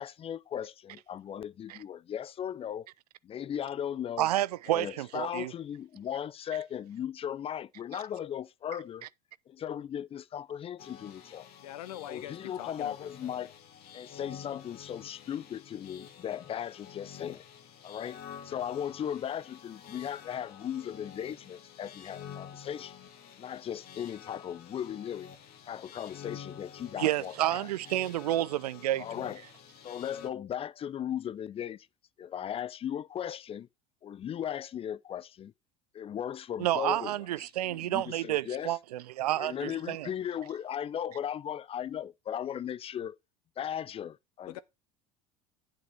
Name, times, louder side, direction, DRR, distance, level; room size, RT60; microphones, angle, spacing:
voice 1, 0.0-2.9 3.2-4.3 4.7-9.1 9.5-11.5 12.1-13.5 13.9-17.5 17.8-22.9 23.4-25.3 25.7-27.7 29.0-29.4 29.8-31.9 32.2-33.7 34.0-35.5 35.9-38.8 39.4-43.2 43.6-44.5, left 9 dB, 30° left, 0.5 m, -37 dB
voice 2, 4.2-5.5 27.0-29.1 36.6-40.1, right 14 dB, 80° right, 0.4 m, -30 dB
sound 1, 10.8-30.3, left 8 dB, 50° left, 1.9 m, -49 dB
voice 3, 11.6-13.5 44.5-44.6, left 13 dB, 75° left, 0.8 m, -44 dB
9.7 x 8.4 x 3.5 m
hypercardioid pair, 70°, 20 cm